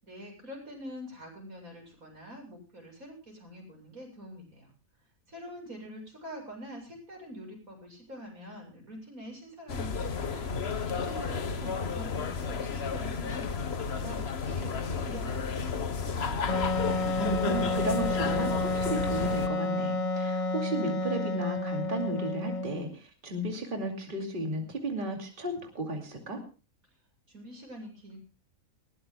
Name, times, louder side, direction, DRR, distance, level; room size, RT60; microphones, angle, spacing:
voice 1, 0.0-4.7 5.3-16.2 27.3-28.2, equal, 90° right, 1 dB, 7.9 m, -45 dB
sound 1, 9.7-19.5, left 5 dB, 50° left, 1.3 m, -32 dB
Wind instrument woodwind instrument, 16.5-22.9, left 2 dB, 30° left, 1.0 m, -30 dB
voice 2, 17.2-26.4, right 1 dB, 40° right, 2 dB, 2.7 m, -34 dB
21.0 x 18.0 x 2.2 m, 0.34 s
omnidirectional pair, 1.4 m